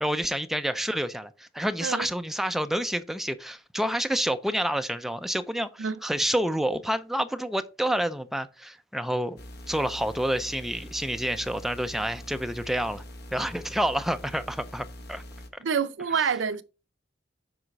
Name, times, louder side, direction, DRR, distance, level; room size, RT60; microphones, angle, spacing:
voice 1, 0.0-9.4 9.7-13.0 13.3-15.2, equal, ahead, 0.5 m, -28 dB
sound 1, 9.4-15.5, left 1 dB, 55° left, 1.0 m, -43 dB
voice 2, 15.6-16.6, right 6 dB, 70° right, 0.6 m, -27 dB
7.8 x 4.9 x 4.0 m
head